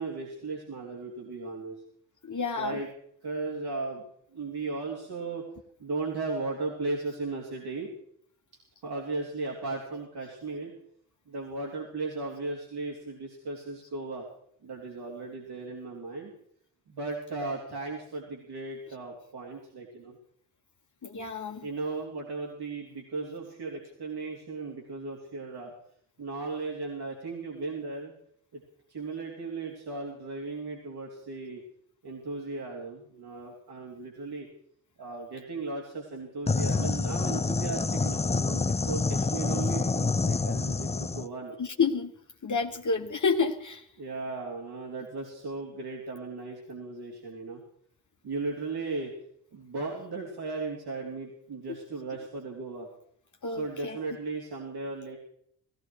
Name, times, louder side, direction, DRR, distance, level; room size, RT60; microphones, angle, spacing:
voice 1, 0.0-1.8 2.6-2.9 3.2-4.1 4.3-5.5 5.8-7.9 8.8-10.7 11.3-14.3 14.6-16.3 16.9-20.2 21.6-25.7 26.2-28.1 28.5-28.6 28.9-31.6 32.0-34.5 35.0-41.5 44.0-47.6 48.2-49.1 49.5-52.9 53.4-55.2, right 3 dB, 65° right, -1 dB, 3.5 m, -36 dB
voice 2, 2.2-2.7 21.0-21.6 41.6-42.1 42.4-43.8 53.4-54.0, left 5 dB, 45° left, 3 dB, 1.5 m, -29 dB
sound 1, 36.5-41.3, left 4 dB, 15° left, 0.6 m, -27 dB
16.5 x 16.5 x 4.7 m, 0.67 s
supercardioid pair, 45°, 42 cm